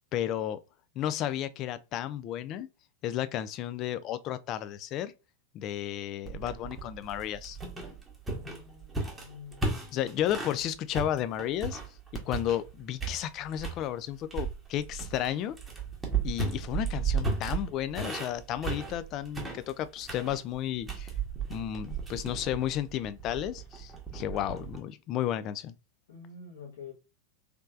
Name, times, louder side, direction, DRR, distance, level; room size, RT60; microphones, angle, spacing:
voice 1, 0.1-0.6 1.0-2.7 3.0-5.1 5.5-7.6 9.9-11.8 12.3-15.6 16.2-21.1 21.5-25.7, left 11 dB, 35° left, 0.3 m, -33 dB
sound 1, 6.3-10.6 10.9-12.7 13.0-13.8 14.3-24.8, right 5 dB, 10° right, 1.0 m, -35 dB
voice 2, 8.3-10.0 26.1-26.9, left 6 dB, 60° left, 1.0 m, -47 dB
3.3 x 3.1 x 2.4 m
figure-of-eight pair, 90°, 0 cm